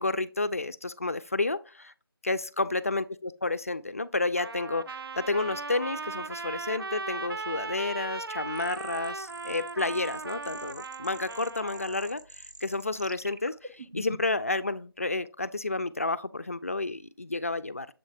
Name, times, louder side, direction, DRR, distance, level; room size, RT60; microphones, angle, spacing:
voice 1, 0.0-1.9 2.2-17.9, left 2 dB, 35° left, 0.3 m, -31 dB
Trumpet, 4.4-12.2, right 3 dB, 65° right, 0.4 m, -38 dB
sound 1, 8.6-14.4, right 1 dB, 45° right, 0.8 m, -46 dB
7.4 x 3.1 x 4.7 m
figure-of-eight pair, 170°, 13 cm